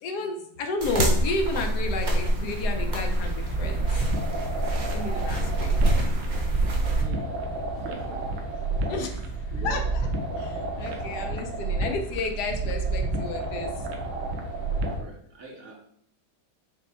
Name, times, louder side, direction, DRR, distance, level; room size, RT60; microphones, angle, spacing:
voice 1, 0.0-4.2 4.9-5.9 8.9-9.3 9.6-13.9, left 3 dB, 75° left, 5 dB, 1.0 m, -32 dB
sound 1, 0.8-7.0, right 1 dB, 35° right, 0.7 m, -26 dB
sound 2, 2.3-15.0, equal, 50° left, 0.7 m, -42 dB
sound 3, 3.1-15.1, right 3 dB, 80° right, 1.4 m, -30 dB
voice 2, 7.0-7.4 7.7-8.3 9.5-9.8 10.7-11.1 15.0-15.8, right 3 dB, 65° right, 0 dB, 0.9 m, -42 dB
5.3 x 2.1 x 4.2 m, 0.67 s
omnidirectional pair, 1.9 m